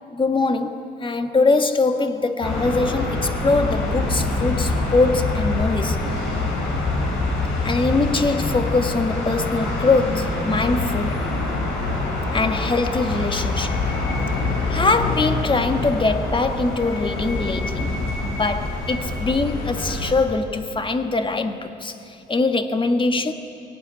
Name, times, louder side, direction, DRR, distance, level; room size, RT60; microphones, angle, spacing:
voice 1, 0.1-6.0 7.6-11.2 12.3-13.8 14.7-17.9 18.2-23.3, left 3 dB, 25° left, 7 dB, 1.6 m, -22 dB
sound 1, 2.4-20.1, left 2 dB, 85° left, 5.8 m, -25 dB
22.5 x 18.0 x 9.6 m, 2.7 s
cardioid pair, 90°, 20 cm